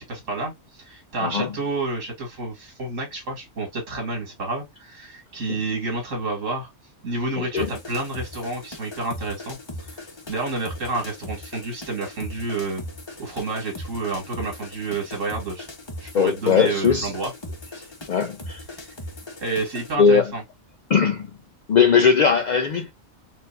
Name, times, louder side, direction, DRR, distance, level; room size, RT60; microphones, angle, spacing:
voice 1, 0.0-6.7 7.0-10.0 10.3-12.8 13.2-15.7 16.0-17.3 19.4-20.4, right 3 dB, 85° right, 2.2 m, -29 dB
voice 2, 1.2-1.5 5.5-5.6 7.4-7.7 16.1-17.1 18.1-18.6 20.0-20.3 20.9-21.3 21.7-22.9, left 6 dB, 75° left, 0.4 m, -19 dB
sound 1, 7.6-19.9, left 1 dB, 25° left, 0.8 m, -39 dB
4.5 x 2.5 x 2.5 m
omnidirectional pair, 1.3 m